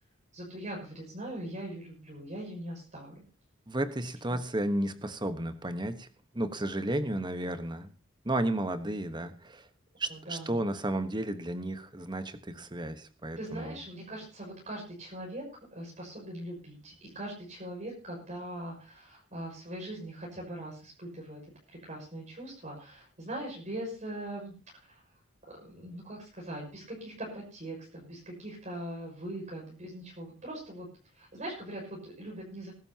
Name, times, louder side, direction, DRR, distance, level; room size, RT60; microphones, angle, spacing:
voice 1, 0.3-3.2 7.4-7.5 10.1-10.6 13.4-15.4 15.7-21.4 21.7-25.0 25.5-32.7, right 1 dB, 40° right, -2 dB, 6.2 m, -41 dB
voice 2, 3.7-6.1 6.3-7.9 8.2-9.7 10.0-13.8, right 1 dB, 20° right, 10 dB, 1.2 m, -33 dB
21.0 x 12.0 x 2.9 m, 0.36 s
head